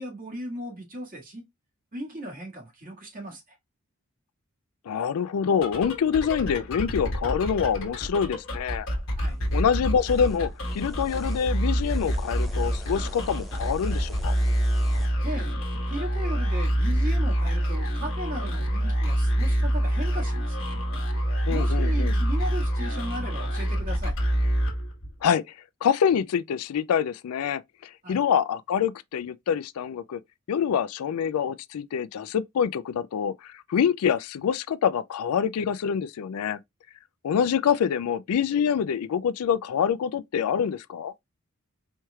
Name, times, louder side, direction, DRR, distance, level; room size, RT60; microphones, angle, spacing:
voice 1, 0.0-1.4 1.9-3.6 9.2-9.4 15.2-15.6 15.9-20.7 21.5-24.1 28.0-28.2, equal, 40° right, 1.7 m, -37 dB
voice 2, 4.9-8.9 9.5-14.3 21.5-22.2 25.2-25.4 25.8-30.2 30.5-36.6 37.2-41.1, left 7 dB, 80° left, 0.3 m, -26 dB
sound 1, 5.5-25.3, equal, 60° left, 1.3 m, -26 dB
sound 2, 9.3-15.1, equal, ahead, 0.6 m, -46 dB
4.4 x 3.1 x 2.3 m
head